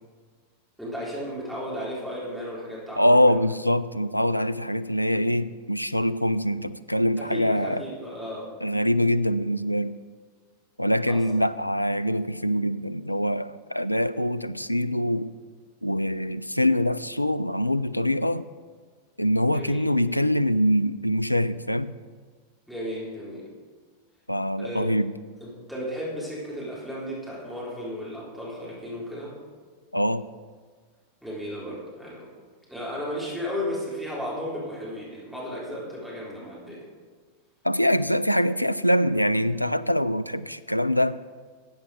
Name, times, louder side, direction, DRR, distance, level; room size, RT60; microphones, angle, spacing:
voice 1, 0.8-3.4 7.2-8.5 11.1-11.2 19.5-19.8 22.7-23.5 24.6-25.0 25.4-29.3 31.2-32.3 32.7-36.8, equal, ahead, -7 dB, 3.9 m, -34 dB
voice 2, 3.0-7.8 8.6-9.9 10.8-15.3 15.8-18.4 19.2-21.9 24.3-25.1 29.9-30.2 37.6-41.2, equal, 90° left, 15 dB, 0.4 m, -24 dB
12.5 x 8.6 x 4.9 m, 1.5 s
figure-of-eight pair, 90°, 0 cm